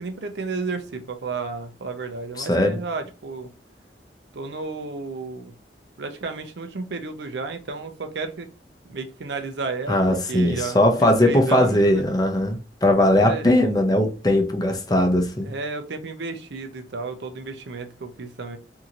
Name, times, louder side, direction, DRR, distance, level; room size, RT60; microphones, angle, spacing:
voice 1, 0.0-3.5 4.3-5.5 6.0-8.5 8.9-12.1 13.2-13.7 15.5-18.6, right 4 dB, 75° right, 0.6 m, -32 dB
voice 2, 2.4-2.8 9.9-15.5, left 1 dB, 20° left, 0.6 m, -19 dB
2.9 x 2.7 x 2.4 m
head